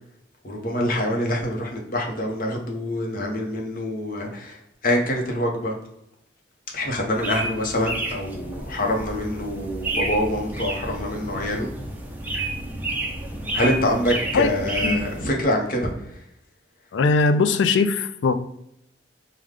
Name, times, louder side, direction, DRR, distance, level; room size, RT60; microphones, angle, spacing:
voice 1, 0.4-4.6 4.8-5.8 6.7-11.7 13.5-15.9, left 1 dB, 50° left, 1 dB, 0.8 m, -25 dB
sound 1, 7.1-15.2, right 1 dB, 10° right, 0.5 m, -30 dB
voice 2, 16.9-18.4, left 4 dB, 85° left, 11 dB, 0.4 m, -20 dB
4.8 x 2.2 x 3.6 m, 0.78 s
head